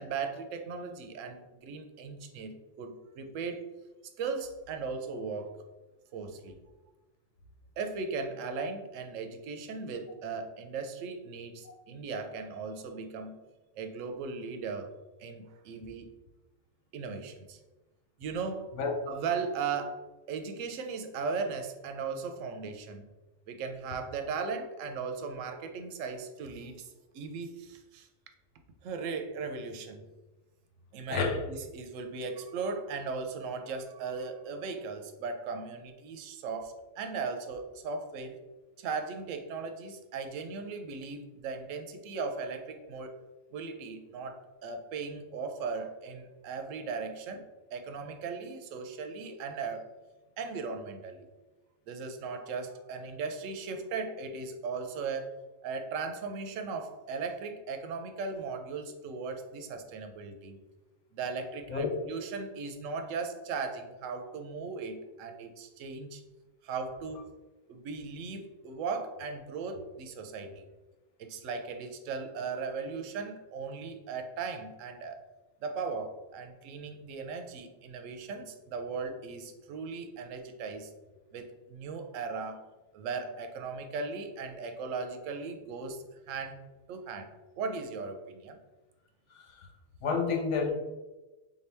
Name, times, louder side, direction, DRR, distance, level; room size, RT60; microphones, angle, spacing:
voice 1, 0.0-3.7 4.2-5.5 6.1-6.6 7.8-13.4 13.8-14.9 15.2-16.1 16.9-17.6 18.2-18.8 19.1-20.0 20.3-23.1 23.5-28.1 28.8-30.1 30.9-31.2 31.5-38.4 38.8-43.1 43.5-49.9 50.4-51.3 51.9-55.4 55.6-60.6 61.1-66.2 66.6-67.3 67.7-70.7 71.2-75.2 75.6-80.9 81.3-82.6 82.9-86.6 86.9-87.3 87.6-88.6, right 4 dB, 80° right, 6 dB, 0.9 m, -37 dB
voice 2, 31.1-31.4 61.7-61.9 89.3-89.7 90.0-90.7, left 5 dB, 70° left, 1 dB, 1.0 m, -30 dB
3.8 x 2.8 x 3.3 m, 1.1 s
omnidirectional pair, 1.3 m